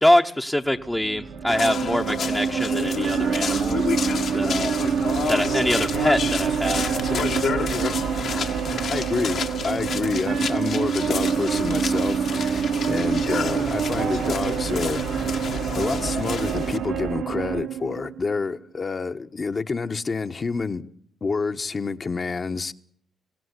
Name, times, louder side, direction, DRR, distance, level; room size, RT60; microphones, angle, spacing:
voice 1, 0.0-3.8 4.3-4.9 5.3-6.9, left 1 dB, 10° left, 1.0 m, -24 dB
sound 1, 0.6-17.6, right 5 dB, 90° right, 2.6 m, -29 dB
sound 2, 1.5-16.8, left 6 dB, 60° left, 1.8 m, -30 dB
sound 3, 1.5-18.5, right 8 dB, 70° right, 1.6 m, -28 dB
voice 2, 8.9-15.4 15.7-20.9 21.2-22.7, left 4 dB, 35° left, 1.3 m, -28 dB
24.0 x 17.0 x 9.8 m
cardioid pair, 90°, 0 cm